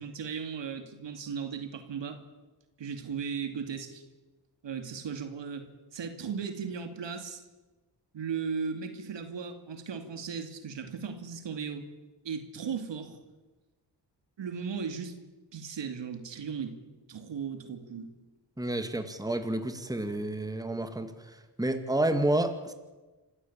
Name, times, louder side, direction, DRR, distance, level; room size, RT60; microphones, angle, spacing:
voice 1, 0.0-2.2 2.8-4.0 4.6-5.7 5.9-7.4 8.1-11.8 12.2-13.2 14.4-15.1 15.5-16.8 17.1-18.1, right 6 dB, 75° right, 7 dB, 2.6 m, -36 dB
voice 2, 18.6-22.7, right 1 dB, 10° right, 7 dB, 2.2 m, -30 dB
26.5 x 15.0 x 8.8 m, 1.2 s
cardioid pair, 80°, 43 cm